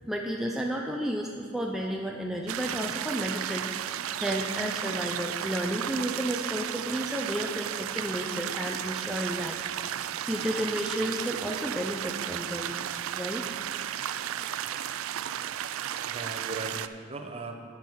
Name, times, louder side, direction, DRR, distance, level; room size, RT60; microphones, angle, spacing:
voice 1, 0.0-9.6 9.8-12.7 13.2-13.4, equal, ahead, -1 dB, 0.5 m, -32 dB
sound 1, 2.5-16.9, right 11 dB, 85° right, 0.3 m, -34 dB
voice 2, 15.8-17.6, right 3 dB, 30° right, 4 dB, 0.7 m, -41 dB
9.2 x 8.7 x 4.6 m, 2.1 s
head